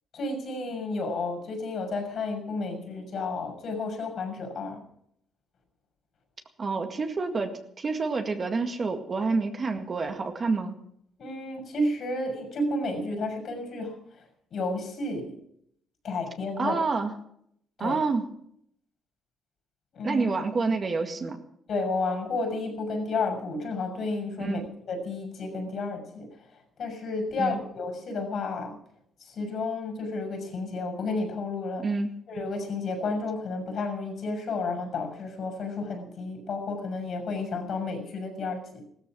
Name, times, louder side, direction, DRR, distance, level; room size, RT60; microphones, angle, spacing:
voice 1, 0.1-4.8 11.2-14.0 14.5-15.4 16.0-16.8 17.8-18.0 19.9-20.2 21.7-24.6 24.9-26.3 26.8-28.8 29.2-31.9 32.3-38.9, left 3 dB, 60° left, 4 dB, 6.2 m, -31 dB
voice 2, 6.6-10.8 16.6-17.1 17.8-18.3 20.0-21.4 24.4-24.7 27.4-27.6 31.8-32.1, right 4 dB, 40° right, 5 dB, 1.9 m, -28 dB
16.5 x 13.5 x 6.1 m, 0.72 s
cardioid pair, 90°, 0 cm